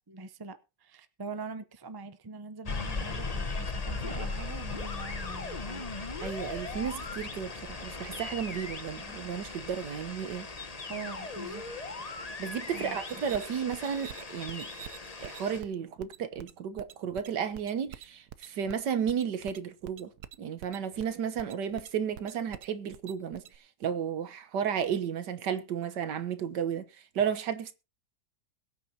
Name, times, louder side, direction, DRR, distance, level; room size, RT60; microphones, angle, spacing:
voice 1, 0.1-5.9 10.9-11.6 12.7-13.2, right 4 dB, 25° right, 0.4 m, -43 dB
sound 1, 2.7-15.6, left 3 dB, 25° left, 1.0 m, -38 dB
voice 2, 6.2-10.5 12.4-14.7 15.2-20.1 20.4-23.4 23.8-27.7, right 8 dB, 85° right, 1.7 m, -33 dB
sound 2, 13.0-23.6, right 10 dB, 70° right, 1.3 m, -48 dB
22.0 x 9.0 x 2.8 m
omnidirectional pair, 1.8 m